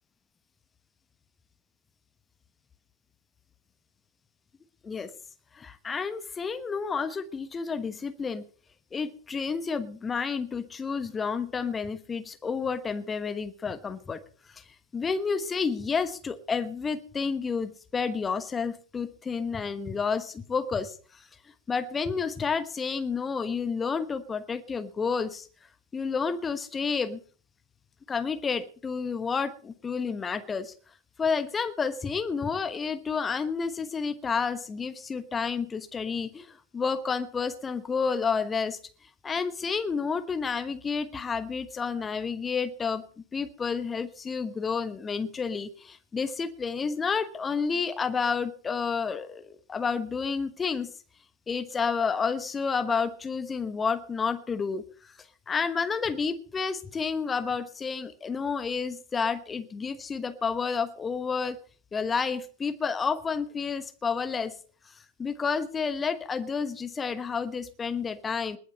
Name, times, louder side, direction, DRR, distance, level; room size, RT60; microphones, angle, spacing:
voice 1, 5.5-8.5 8.9-14.2 14.5-14.6 14.9-21.3 21.7-25.5 25.9-27.2 28.1-30.7 31.2-38.8 39.2-43.0 43.3-50.9 51.5-55.1 55.5-61.6 61.9-64.5 65.2-68.6, left 5 dB, 15° left, 11 dB, 1.2 m, -30 dB
20.5 x 7.9 x 5.3 m, 0.41 s
figure-of-eight pair, 90°, 0 cm